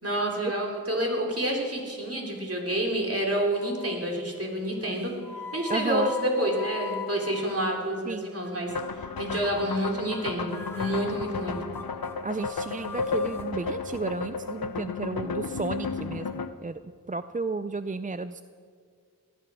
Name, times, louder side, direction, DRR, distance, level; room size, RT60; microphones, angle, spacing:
voice 1, 0.0-5.1 5.5-8.7 9.2-10.5 10.7-11.6, right 1 dB, 40° right, -1 dB, 3.7 m, -28 dB
sound 1, 2.6-3.2 3.6-4.1 4.8-8.1 8.4-8.8 9.2-9.5 9.8-10.2 10.5-13.5, left 6 dB, 5° left, 2.1 m, -42 dB
voice 2, 5.7-6.1 8.1-8.2 12.2-16.8 17.1-18.4, right 3 dB, 25° right, 12 dB, 0.4 m, -32 dB
sound 2, 8.7-16.5, left 4 dB, 85° left, 0.8 m, -33 dB
18.5 x 12.0 x 6.3 m, 2.1 s
wide cardioid pair, 40°, 35 cm